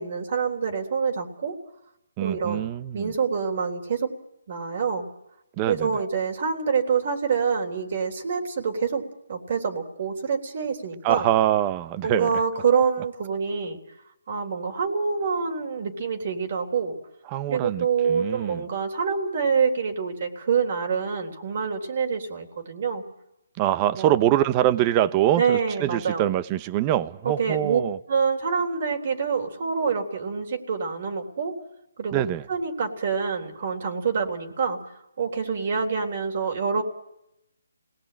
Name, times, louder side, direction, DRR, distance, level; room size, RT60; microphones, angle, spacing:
voice 1, 0.0-1.6 2.2-2.7 2.9-4.1 4.5-5.1 5.7-9.0 9.3-11.3 12.0-13.8 14.3-16.9 17.5-23.0 24.0-24.3 25.4-26.3 27.2-27.8 28.1-31.5 32.0-32.2 32.5-34.8 35.2-36.8, right 6 dB, 50° right, 3.6 m, -26 dB
voice 2, 2.2-3.1 5.6-5.9 11.0-12.3 17.3-18.6 23.6-28.0 32.1-32.4, right 12 dB, 25° right, 1.0 m, -24 dB
27.5 x 19.0 x 8.9 m
hypercardioid pair, 155°, 0 cm